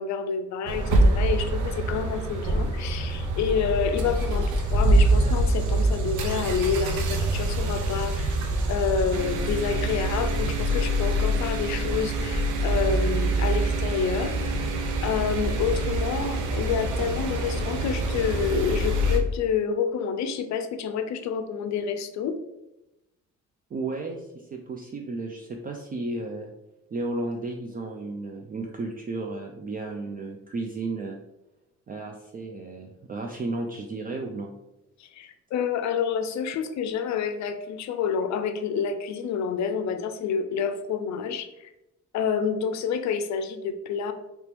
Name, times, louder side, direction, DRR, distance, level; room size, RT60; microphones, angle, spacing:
voice 1, 0.0-8.4 8.7-14.7 15.0-22.4 35.0-41.5 42.1-44.1, left 6 dB, 65° left, 9 dB, 0.5 m, -28 dB
sound 1, 0.7-19.2, right 1 dB, 80° right, 0.6 m, -25 dB
voice 2, 23.7-26.5 26.9-31.2 31.9-34.5, right 2 dB, 30° right, 2 dB, 0.4 m, -33 dB
2.9 x 2.9 x 3.3 m, 0.93 s
cardioid pair, 90°, 30 cm